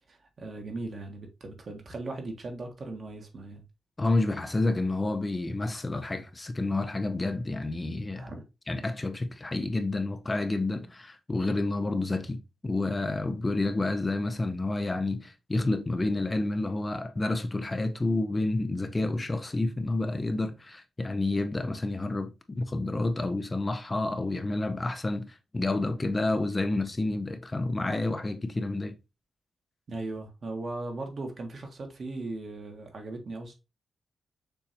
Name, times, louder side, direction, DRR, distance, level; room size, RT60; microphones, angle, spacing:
voice 1, 0.1-3.6 8.1-8.4 29.9-33.5, right 2 dB, 55° right, 1.5 m, -38 dB
voice 2, 4.0-8.3 8.7-28.9, left 2 dB, 25° left, 0.6 m, -29 dB
6.8 x 2.7 x 2.8 m
cardioid pair, 80°, 0 cm